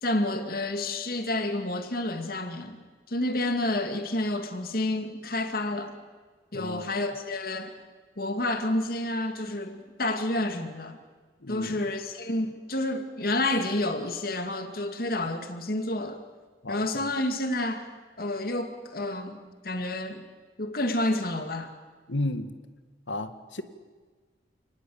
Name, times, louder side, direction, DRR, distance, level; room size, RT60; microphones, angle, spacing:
voice 1, 0.0-2.8 3.1-5.9 6.5-7.7 8.2-11.0 11.5-16.2 16.7-17.9 18.2-20.2 20.6-21.7, left 1 dB, 55° left, 6 dB, 2.4 m, -29 dB
voice 2, 6.5-6.9 11.4-11.8 16.6-17.1 22.1-22.5 23.1-23.6, left 1 dB, 85° left, 10 dB, 2.0 m, -33 dB
29.5 x 19.5 x 8.7 m, 1.5 s
head